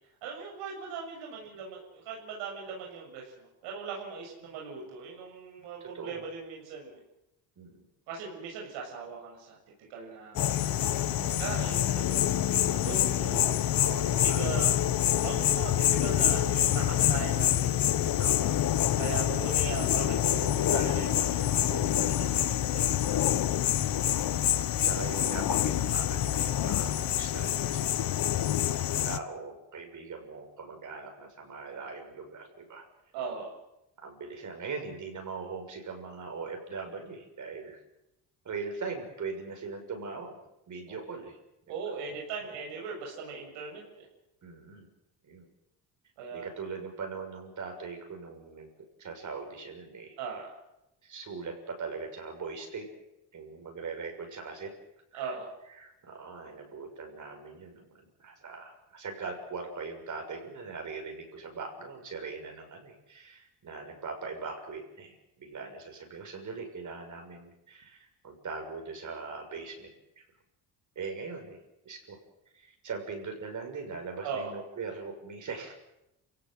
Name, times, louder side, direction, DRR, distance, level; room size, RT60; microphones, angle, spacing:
voice 1, 0.2-1.8 2.1-7.0 8.1-9.6 9.9-10.7 11.0-11.1 11.4-13.7 14.1-17.8 18.1-18.2 19.0-23.0 33.1-33.6 40.9-41.0 41.7-44.1 46.2-46.5 50.2-50.5 55.1-55.5 74.2-74.5, right 5 dB, 90° right, -1 dB, 7.0 m, -39 dB
voice 2, 5.8-6.2 7.6-7.8 11.1-11.7 13.8-14.9 18.2-18.6 23.6-23.8 24.8-28.1 29.0-32.8 34.0-37.8 38.4-40.4 40.7-41.4 41.7-41.8 44.4-44.9 45.2-45.5 46.3-48.7 49.0-50.2 51.0-52.9 53.3-54.7 55.1-55.3 55.7-70.2 70.9-71.6 71.8-72.2 72.5-75.7, right 4 dB, 45° right, 3 dB, 6.5 m, -41 dB
sound 1, 10.4-29.2, left 11 dB, 55° left, 1.4 m, -26 dB
27.5 x 17.5 x 7.9 m, 0.90 s
cardioid pair, 95°, 41 cm